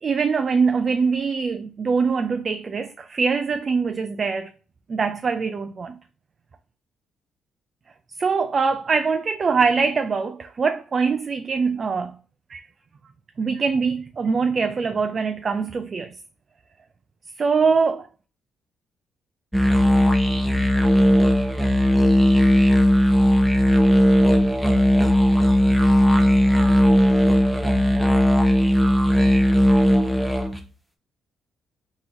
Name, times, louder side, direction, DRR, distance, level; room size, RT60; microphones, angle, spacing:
voice 1, 0.0-4.5 4.9-6.0 8.2-12.1 12.5-12.6 13.4-16.1 17.4-18.1, right 5 dB, 40° right, 0.4 m, -23 dB
sound 1, 19.5-30.6, equal, 5° right, 0.8 m, -17 dB
3.9 x 3.0 x 3.7 m
cardioid pair, 90°, 0 cm